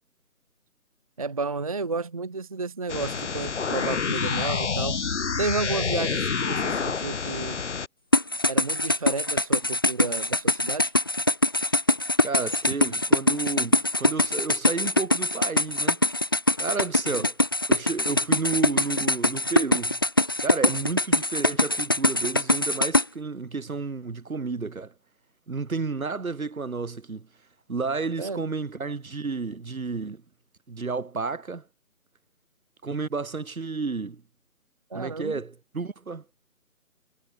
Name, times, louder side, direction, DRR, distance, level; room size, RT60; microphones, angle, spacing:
voice 1, 1.2-5.0 5.4-7.6 8.5-10.9 17.2-17.3 28.2-28.4 34.9-35.4, right 4 dB, 25° right, 0.8 m, -32 dB
sound 1, 2.9-7.9, left 5 dB, 50° left, 1.6 m, -28 dB
sound 2, 8.1-23.0, left 2 dB, 15° left, 0.8 m, -23 dB
voice 2, 12.2-16.0 16.6-17.4 17.7-20.0 20.4-24.9 25.5-27.3 27.7-30.2 30.7-31.7 32.8-34.2 34.9-36.2, right 4 dB, 65° right, 2.8 m, -31 dB
figure-of-eight pair, 155°, 44 cm